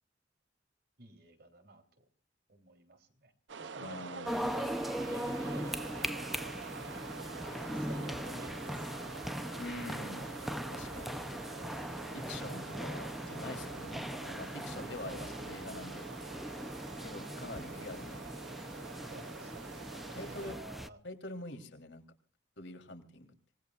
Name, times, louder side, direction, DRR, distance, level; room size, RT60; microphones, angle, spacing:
voice 1, 1.0-2.0 2.5-3.3 3.6-6.2 7.6-9.2 12.6-12.9 15.0-15.4 19.1-19.6 20.2-21.0, right 2 dB, 60° right, 5 dB, 3.5 m, -50 dB
sound 1, 3.5-20.6, right 5 dB, 80° right, 0.7 m, -46 dB
voice 2, 3.8-4.4 9.6-10.3 10.7-11.2 12.1-16.1 17.0-18.2 20.1-20.6 21.0-22.0 22.6-23.3, left 2 dB, 80° left, 4 dB, 3.5 m, -45 dB
sound 2, 4.2-20.9, equal, ahead, 0.7 m, -40 dB
27.5 x 19.5 x 2.5 m, 0.43 s
head